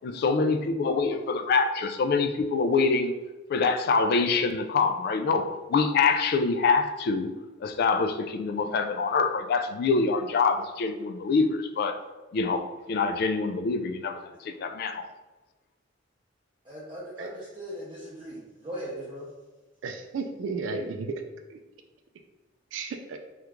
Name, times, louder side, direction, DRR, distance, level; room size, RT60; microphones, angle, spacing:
voice 1, 0.0-3.1 3.5-7.3 7.6-12.0 12.3-15.1, left 4 dB, 55° left, 7 dB, 0.3 m, -25 dB
voice 2, 16.6-19.3, equal, 25° right, -9 dB, 0.7 m, -39 dB
voice 3, 19.8-21.2 21.5-21.6 22.7-23.2, right 4 dB, 70° right, 5 dB, 0.3 m, -33 dB
3.0 x 2.4 x 3.4 m, 1.1 s
head